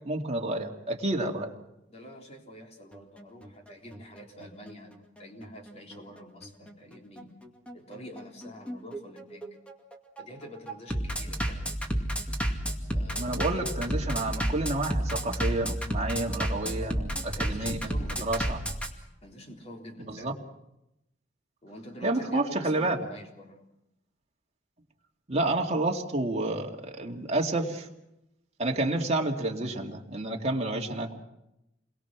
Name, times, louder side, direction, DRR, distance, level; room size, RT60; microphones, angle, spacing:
voice 1, 0.0-1.6 13.2-17.9 18.2-18.6 20.1-20.3 22.0-23.0 25.3-27.9 28.6-31.2, right 2 dB, 35° right, 1 dB, 2.3 m, -29 dB
voice 2, 1.9-7.3 7.7-9.5 10.2-11.7 12.9-13.7 16.8-17.1 17.4-18.4 19.2-20.3 21.6-23.6, equal, 35° left, 2 dB, 3.5 m, -46 dB
Bass drum, 2.9-18.9, equal, 5° left, 2.3 m, -31 dB
29.0 x 22.0 x 6.1 m, 0.88 s
head